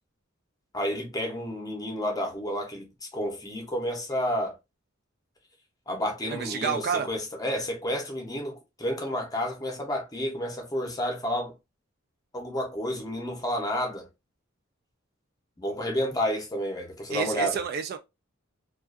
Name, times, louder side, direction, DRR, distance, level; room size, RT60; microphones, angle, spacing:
voice 1, 0.7-4.6 5.9-11.5 12.3-14.1 15.6-17.6, equal, 20° left, 0.7 m, -30 dB
voice 2, 6.3-7.1 17.1-18.0, right 6 dB, 50° right, 0.3 m, -29 dB
2.4 x 2.3 x 2.4 m
head